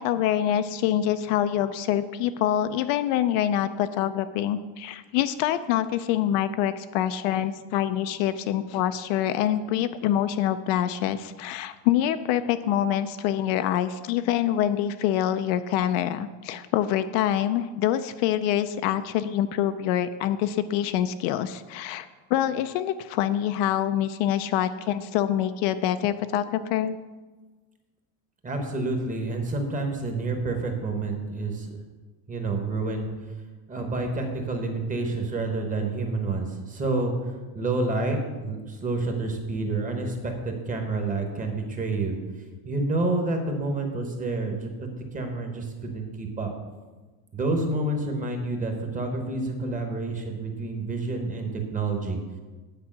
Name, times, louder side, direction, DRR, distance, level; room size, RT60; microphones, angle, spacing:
voice 1, 0.0-27.0, left 11 dB, 65° left, 11 dB, 0.5 m, -25 dB
voice 2, 28.4-31.7 32.3-33.1 33.7-37.1 37.5-42.1 42.6-46.5 47.3-52.2, right 2 dB, 15° right, 3 dB, 1.0 m, -28 dB
8.9 x 4.8 x 7.4 m, 1.3 s
cardioid pair, 160°, 49 cm